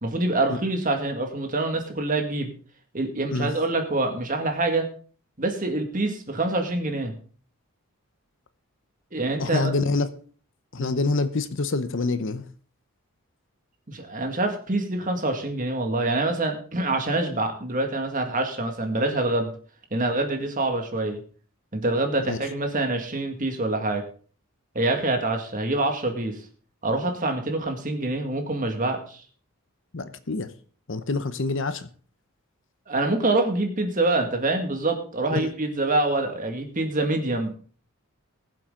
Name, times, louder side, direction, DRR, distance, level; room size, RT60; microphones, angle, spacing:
voice 1, 0.0-2.5 2.9-4.9 5.4-7.1 9.1-9.7 10.8-11.0 13.9-19.5 19.9-21.2 21.7-24.0 24.7-26.4 26.8-29.2 32.9-37.5, right 2 dB, 35° right, 2.0 m, -25 dB
voice 2, 9.4-10.1 10.7-12.4 22.3-22.4 29.9-30.5 30.9-31.9 35.3-35.5, left 3 dB, 55° left, 0.8 m, -26 dB
20.0 x 7.6 x 3.8 m
head